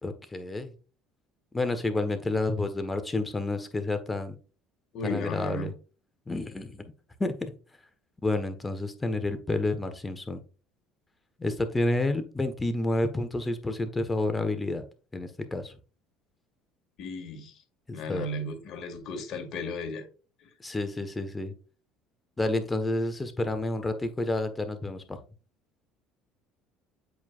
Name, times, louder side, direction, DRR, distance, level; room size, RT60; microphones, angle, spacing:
voice 1, 0.0-0.7 1.5-4.3 5.0-5.7 6.3-6.9 7.2-7.5 8.2-10.4 11.4-14.8 15.1-15.7 17.9-18.3 20.6-21.5 22.4-25.2, left 2 dB, 15° left, 1.4 m, -29 dB
voice 2, 4.9-5.7 17.0-17.6 17.9-20.0 20.4-20.5, left 2 dB, 55° left, 2.1 m, -35 dB
8.2 x 4.7 x 2.5 m
hypercardioid pair, 75°, 0 cm